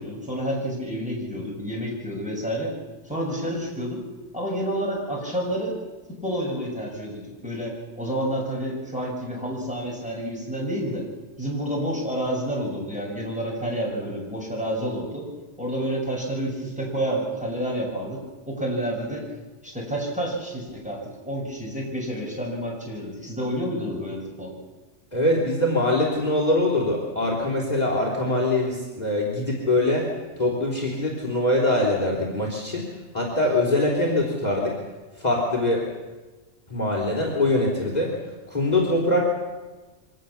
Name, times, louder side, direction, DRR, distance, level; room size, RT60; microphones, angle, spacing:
voice 1, 0.0-2.7 3.1-4.0 4.3-5.8 6.2-11.1 11.4-15.3 15.6-19.3 19.6-24.6, equal, 5° right, -3 dB, 6.9 m, -29 dB
voice 2, 25.1-30.1 30.4-32.8 33.1-34.8 35.2-35.8 36.7-38.1 38.5-39.2, left 1 dB, 35° left, -1 dB, 3.9 m, -23 dB
24.5 x 19.0 x 7.2 m, 1.2 s
omnidirectional pair, 1.3 m